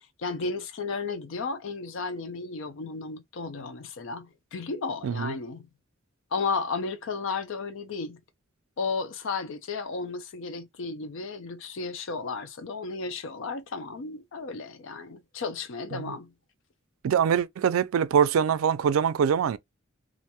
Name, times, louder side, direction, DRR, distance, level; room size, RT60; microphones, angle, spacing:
voice 1, 0.2-5.7 6.3-8.2 8.8-16.3, left 4 dB, 65° left, 0.5 m, -33 dB
voice 2, 17.0-19.6, right 7 dB, 85° right, 0.3 m, -24 dB
2.5 x 2.2 x 2.8 m
head